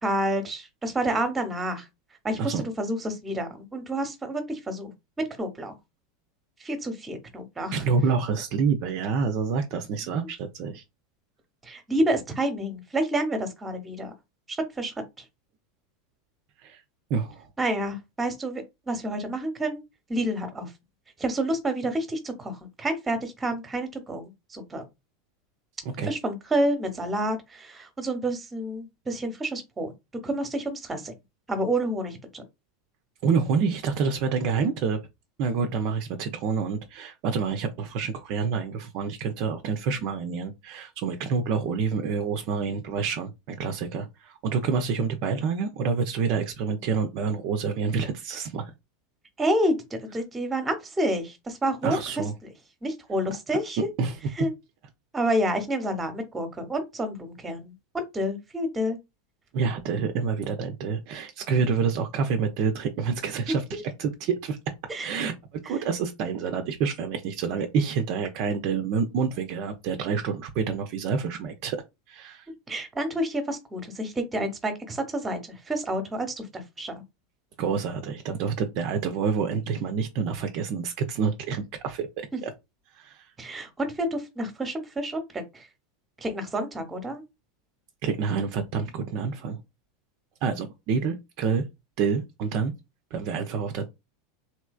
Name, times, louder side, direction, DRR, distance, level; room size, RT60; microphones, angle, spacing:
voice 1, 0.0-1.9 2.2-4.9 5.4-5.7 6.6-7.8 11.6-14.1 14.5-15.2 17.6-19.8 20.1-20.7 21.2-24.8 26.0-29.9 30.2-31.1 31.5-32.4 49.4-52.5 52.8-53.8 54.4-54.5 55.1-59.0 63.5-63.8 64.9-65.1 65.6-65.7 72.7-76.9 83.4-85.7 86.2-87.2, right 1 dB, 15° right, 0.9 m, -29 dB
voice 2, 7.7-10.8 16.6-16.8 17.1-17.5 26.0-26.1 33.2-35.0 35.4-48.7 51.8-52.3 54.0-54.1 59.5-64.6 65.0-71.8 72.1-72.5 77.6-82.5 83.0-83.2 88.0-89.6 90.4-91.6 92.0-92.7 93.1-93.9, right 5 dB, 50° right, 0.5 m, -28 dB
3.2 x 2.8 x 2.3 m
figure-of-eight pair, 85°, 0 cm